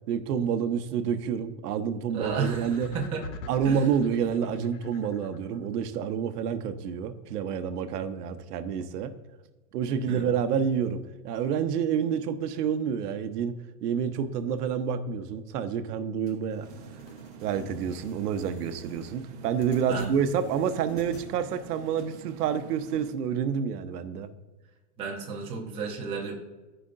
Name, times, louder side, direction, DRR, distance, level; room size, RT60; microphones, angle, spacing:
voice 1, 0.1-2.9 3.5-9.1 9.7-16.7 17.4-24.3, right 7 dB, 90° right, 10 dB, 0.9 m, -28 dB
voice 2, 2.1-3.2 3.6-3.8 10.1-10.3 19.9-20.2 25.0-26.4, right 5 dB, 15° right, -2 dB, 0.7 m, -33 dB
sound 1, 2.2-5.7, left 4 dB, 60° left, 0.9 m, -43 dB
sound 2, 16.3-21.3, left 1 dB, 40° left, 1.9 m, -52 dB
sound 3, 16.6-23.1, right 7 dB, 50° right, 0.9 m, -47 dB
13.5 x 5.1 x 2.5 m, 1.2 s
supercardioid pair, 175°, 46 cm